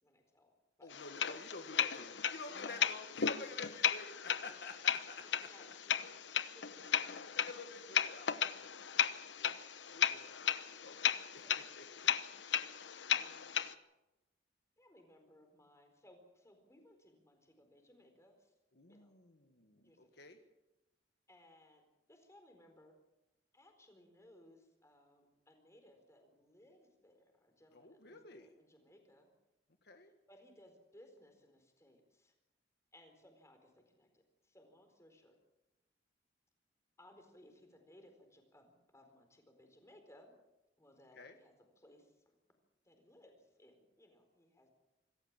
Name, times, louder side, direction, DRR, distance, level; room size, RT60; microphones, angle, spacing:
voice 1, 0.0-0.5 0.8-0.9 2.5-3.0 4.4-4.7 5.2-7.4 11.4-11.6 13.1-13.6 14.8-18.5 18.9-19.1 19.8-20.2 21.3-21.8 22.1-22.9 23.5-29.3 29.9-32.3 32.9-35.3 37.0-40.3 40.8-42.4 42.8-44.7, left 1 dB, 15° left, 4 dB, 4.3 m, -63 dB
voice 2, 0.8-5.5 7.4-10.5 10.8-11.4 11.7-12.1 18.8-20.4 27.7-28.5 29.8-30.1 41.1-41.4, left 3 dB, 65° left, 6 dB, 1.5 m, -51 dB
sound 1, 0.9-13.7, left 8 dB, 85° left, 1.0 m, -36 dB
26.0 x 14.5 x 7.5 m, 0.98 s
head